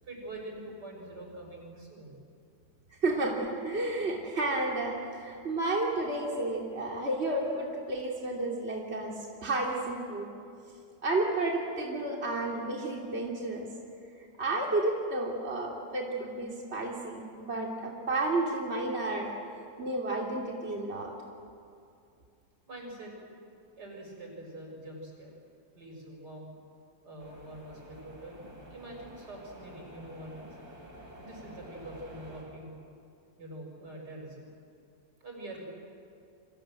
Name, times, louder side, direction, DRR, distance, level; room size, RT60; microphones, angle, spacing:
voice 1, 0.0-2.2 22.7-23.2 23.8-25.3 25.7-26.5 27.0-30.5 31.2-32.8 33.4-34.5 35.2-35.6, right 1 dB, 90° right, 0 dB, 7.3 m, -45 dB
voice 2, 3.0-9.1 9.4-10.3 11.0-13.7 14.4-19.3 19.8-21.1, right 2 dB, 40° right, -2 dB, 3.2 m, -31 dB
sound 1, 27.2-32.4, equal, 65° right, 7.9 m, -50 dB
29.5 x 25.0 x 7.8 m, 2.4 s
omnidirectional pair, 1.7 m